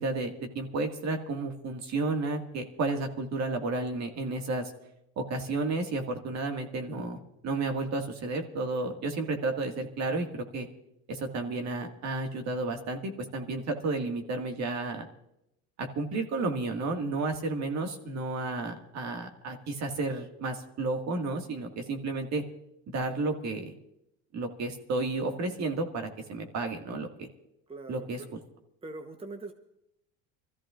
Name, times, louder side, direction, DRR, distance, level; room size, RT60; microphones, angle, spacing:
voice 1, 0.0-4.7 5.2-10.7 11.1-15.1 15.8-22.4 22.9-23.7 24.3-27.3 27.9-28.2, right 3 dB, 55° right, 4 dB, 2.0 m, -32 dB
voice 2, 27.7-28.3 28.8-29.5, right 2 dB, 15° right, 6 dB, 1.0 m, -42 dB
25.5 x 14.0 x 2.5 m, 0.82 s
supercardioid pair, 85°, 33 cm